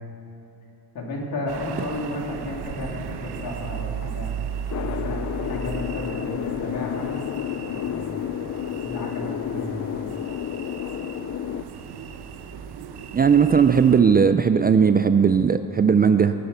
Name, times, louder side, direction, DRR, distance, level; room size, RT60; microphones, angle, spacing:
voice 1, 0.9-4.3 4.7-7.1 7.7-8.3 8.7-10.1, left 1 dB, 60° left, -2 dB, 3.2 m, -33 dB
sound 1, 1.5-14.0, right 7 dB, 85° right, 1.0 m, -36 dB
sound 2, 4.7-11.6, left 10 dB, 45° left, 0.4 m, -31 dB
voice 2, 13.1-16.3, right 6 dB, 25° right, 10 dB, 0.3 m, -17 dB
20.0 x 10.0 x 6.8 m, 2.8 s
cardioid pair, 135°, 38 cm